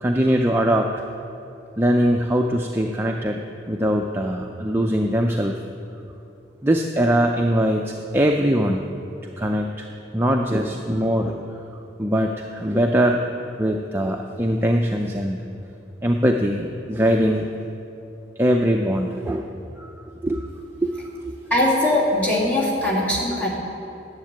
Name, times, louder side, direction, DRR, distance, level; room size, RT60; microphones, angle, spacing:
voice 1, 0.0-1.0 1.8-3.4 3.7-5.5 6.6-8.8 9.4-9.8 10.1-11.6 12.0-13.2 13.6-15.4 16.0-17.5 18.4-19.9 20.2-20.5 20.8-20.9 21.2-21.4, equal, 10° right, 2 dB, 0.4 m, -21 dB
voice 2, 21.5-23.5, left 1 dB, 10° left, -7 dB, 2.5 m, -20 dB
10.5 x 7.4 x 8.9 m, 2.8 s
head